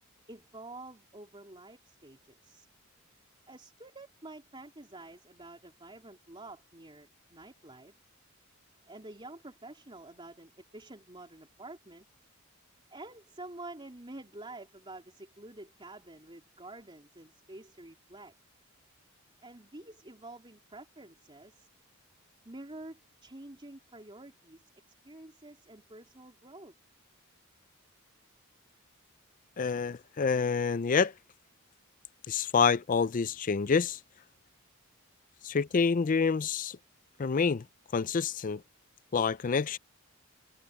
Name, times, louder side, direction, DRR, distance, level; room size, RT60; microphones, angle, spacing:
voice 1, 0.3-2.7 3.5-7.9 8.8-12.1 12.9-18.3 19.4-21.7 22.4-24.7 25.0-26.7, right 2 dB, 25° right, 3.5 m, -48 dB
voice 2, 29.6-31.1 32.3-34.0 35.4-36.8 37.2-37.6 37.9-38.6 39.1-39.8, left 5 dB, 35° left, 0.4 m, -27 dB
head